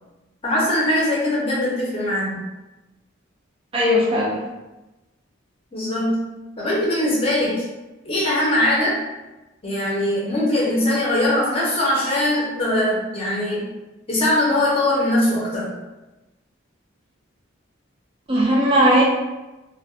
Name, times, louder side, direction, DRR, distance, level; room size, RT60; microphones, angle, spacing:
voice 1, 0.4-2.4 5.7-6.3 6.6-7.6 8.0-9.0 9.6-13.7 14.1-15.7, left 1 dB, 30° left, -6 dB, 0.6 m, -21 dB
voice 2, 3.7-4.4 18.3-19.0, equal, 25° right, -5 dB, 0.4 m, -17 dB
2.2 x 2.1 x 2.7 m, 1.1 s
head